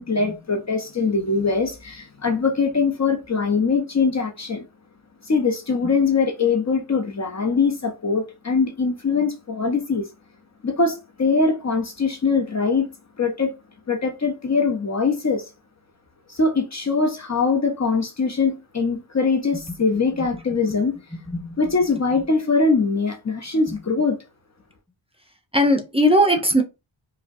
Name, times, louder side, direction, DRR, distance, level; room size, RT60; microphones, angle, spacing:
voice 1, 0.0-4.6 5.2-10.1 10.6-12.9 13.2-13.6 13.9-15.5 16.3-21.0 21.6-24.2, left 4 dB, 35° left, 0.7 m, -22 dB
voice 2, 21.1-21.6 23.7-23.8 25.5-26.6, equal, 10° right, 0.7 m, -19 dB
4.6 x 2.1 x 2.6 m
wide cardioid pair, 75°, 47 cm